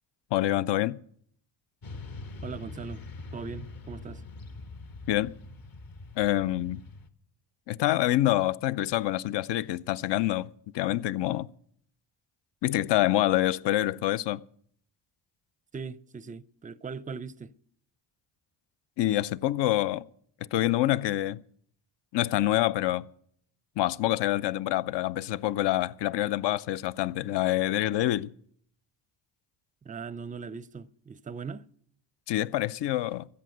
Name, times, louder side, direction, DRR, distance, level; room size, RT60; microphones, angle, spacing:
voice 1, 0.3-1.0 5.1-5.3 6.2-6.8 7.7-10.5 10.7-11.5 12.6-14.4 19.0-20.0 20.5-21.4 22.1-23.1 23.8-28.3 32.3-33.3, left 14 dB, 60° left, 0.7 m, -26 dB
Motorcycle / Traffic noise roadway noise, 1.8-7.1, left 3 dB, 45° left, 1.6 m, -43 dB
voice 2, 2.4-3.0 3.3-4.3 15.7-17.5 29.8-31.7, right 5 dB, 15° right, 0.5 m, -39 dB
13.5 x 8.5 x 7.9 m
supercardioid pair, 65°, 48 cm